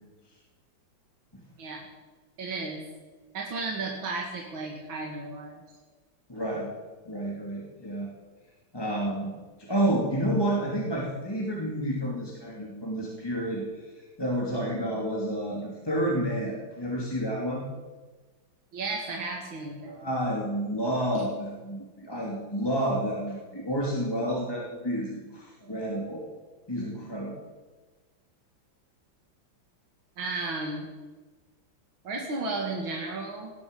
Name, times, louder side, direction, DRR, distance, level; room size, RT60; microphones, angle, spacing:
voice 1, 2.4-2.8 3.3-5.6 18.7-20.0 30.2-30.9 32.0-33.5, right 3 dB, 85° right, -1 dB, 2.8 m, -33 dB
voice 2, 6.3-6.7 7.0-8.1 8.7-9.3 9.6-13.9 14.2-17.6 19.9-26.3 26.7-27.3, right 1 dB, 10° left, -3 dB, 2.7 m, -30 dB
18.5 x 14.0 x 5.4 m, 1.3 s
omnidirectional pair, 2.1 m